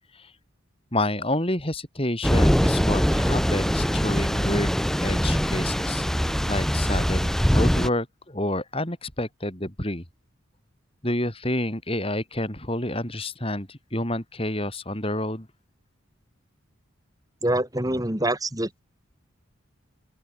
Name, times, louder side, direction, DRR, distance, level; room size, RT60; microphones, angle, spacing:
voice 1, 0.9-10.0 11.0-15.5, left 1 dB, 25° left, 4.9 m, -29 dB
Thunder / Rain, 2.2-7.9, equal, ahead, 0.8 m, -22 dB
voice 2, 17.4-18.8, right 1 dB, 15° right, 3.2 m, -25 dB
open air
head